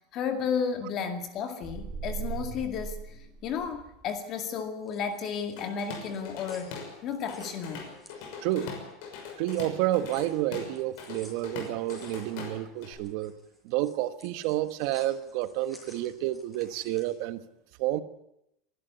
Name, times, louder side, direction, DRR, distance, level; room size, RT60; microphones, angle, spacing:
voice 1, 0.1-3.0 3.4-7.8, left 6 dB, 40° left, 7 dB, 2.1 m, -33 dB
sound 1, 1.6-4.0, right 7 dB, 20° right, 2.5 m, -38 dB
sound 2, 4.8-8.8 9.1-17.2, left 1 dB, 10° left, 5.4 m, -55 dB
Drum kit / Drum, 5.6-6.9 7.3-12.9, left 5 dB, 65° left, 6.3 m, -41 dB
voice 2, 8.4-8.7 9.4-13.3 13.6-17.4 17.8-18.0, right 14 dB, 65° right, 12 dB, 1.4 m, -30 dB
22.5 x 12.0 x 9.5 m, 0.83 s
supercardioid pair, 150°, 0 cm